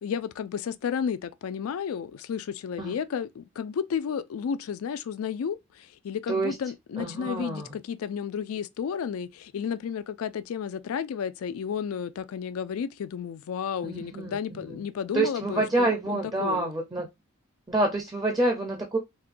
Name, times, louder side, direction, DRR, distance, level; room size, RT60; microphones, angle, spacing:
voice 1, 0.0-16.6, left 7 dB, 80° left, 0.3 m, -32 dB
voice 2, 7.0-7.7 13.8-14.7 15.1-17.1 17.7-19.0, right 2 dB, 15° right, 0.5 m, -27 dB
4.2 x 2.2 x 2.5 m
head